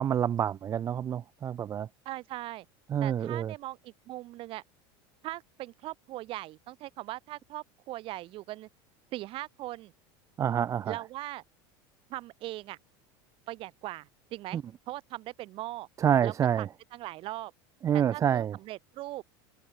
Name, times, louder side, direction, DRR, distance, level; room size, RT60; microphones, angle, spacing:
voice 1, 0.0-1.9 2.9-3.5 10.4-11.0 14.5-14.6 16.0-16.7 17.8-18.6, right 9 dB, 25° right, 0.6 m, -27 dB
voice 2, 2.1-2.7 3.0-4.6 5.2-8.7 9.1-9.9 10.9-11.4 12.1-12.8 13.5-14.6 14.9-15.9 16.2-16.7 16.9-17.5 17.9-19.2, right 17 dB, 45° right, 7.0 m, -40 dB
supercardioid pair, 145°, 12 cm